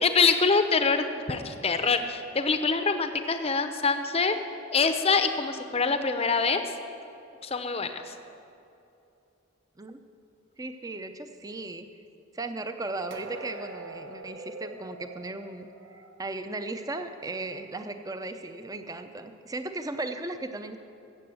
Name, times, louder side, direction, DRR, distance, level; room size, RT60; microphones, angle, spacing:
voice 1, 0.0-4.4 4.7-6.6 7.4-8.1, left 4 dB, 30° left, 8 dB, 0.7 m, -25 dB
voice 2, 10.6-11.9 12.3-20.8, right 2 dB, 15° right, 8 dB, 0.6 m, -36 dB
sound 1, 13.1-17.0 17.4-17.6 18.2-18.3, right 2 dB, 60° right, 1.1 m, -47 dB
14.5 x 7.9 x 7.8 m, 2.8 s
head